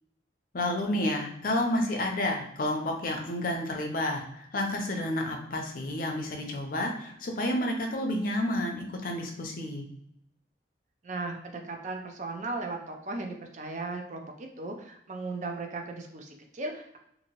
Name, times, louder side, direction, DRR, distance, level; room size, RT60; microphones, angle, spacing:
voice 1, 0.5-9.9, left 1 dB, 50° left, 2 dB, 0.5 m, -30 dB
voice 2, 11.0-17.0, right 3 dB, 40° right, 3 dB, 0.4 m, -37 dB
2.8 x 2.6 x 2.9 m, 0.75 s
head